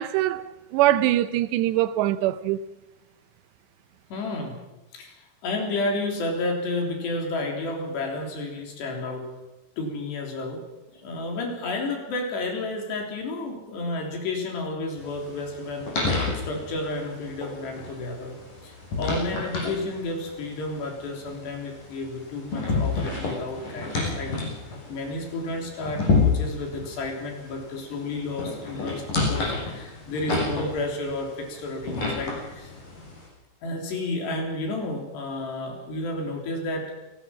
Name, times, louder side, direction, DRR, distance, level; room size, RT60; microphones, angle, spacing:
voice 1, 0.0-2.6, right 14 dB, 80° right, 2.9 m, -23 dB
voice 2, 4.1-4.6 4.9-5.1 5.4-9.3 9.8-10.6 10.9-24.3 24.9-32.7 33.6-36.9, left 2 dB, 70° left, 5.7 m, -31 dB
sound 1, 15.0-33.3, left 3 dB, 50° left, 8.0 m, -30 dB
27.5 x 18.5 x 6.0 m
omnidirectional pair, 5.1 m